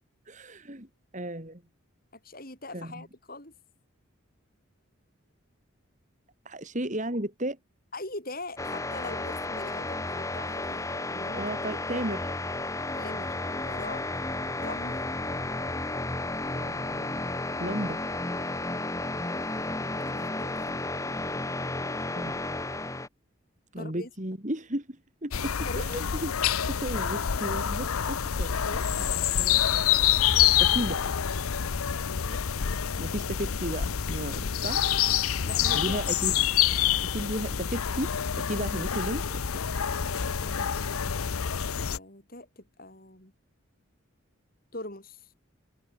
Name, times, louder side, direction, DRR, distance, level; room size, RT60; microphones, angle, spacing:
voice 1, 0.2-0.9 1.1-1.6 2.7-3.0 6.4-7.6 11.3-12.3 16.5-17.2 17.6-18.0 22.1-22.4 23.7-26.3 26.7-29.1 29.4-30.1 30.6-31.0 33.0-34.8 35.7-36.4 37.0-39.6, right 1 dB, 35° right, 3.1 m, -34 dB
voice 2, 2.2-3.5 7.9-11.5 12.9-14.0 14.6-15.0 19.2-21.8 23.8-24.1 25.6-26.1 28.5-28.9 31.9-32.4 34.3-34.5 35.4-36.0 40.2-40.7 41.9-43.3 44.7-45.3, left 2 dB, 45° left, 7.2 m, -42 dB
sound 1, 8.6-23.1, left 2 dB, 15° left, 1.1 m, -33 dB
sound 2, 25.3-42.0, left 9 dB, 90° left, 0.7 m, -27 dB
head